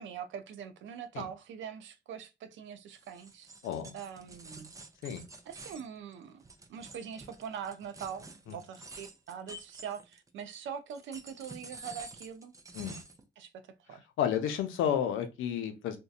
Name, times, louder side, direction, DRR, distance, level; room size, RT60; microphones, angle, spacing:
voice 1, 0.0-3.5 3.9-4.7 5.5-6.4 6.7-12.5 13.4-14.1, right 8 dB, 75° right, 0.5 m, -43 dB
sound 1, 3.0-10.4 10.9-13.2, right 2 dB, 15° right, 0.4 m, -49 dB
voice 2, 3.6-3.9 5.0-5.2 12.7-13.0 14.2-16.0, left 9 dB, 85° left, 0.6 m, -31 dB
2.6 x 2.2 x 2.3 m
cardioid pair, 90°, 20 cm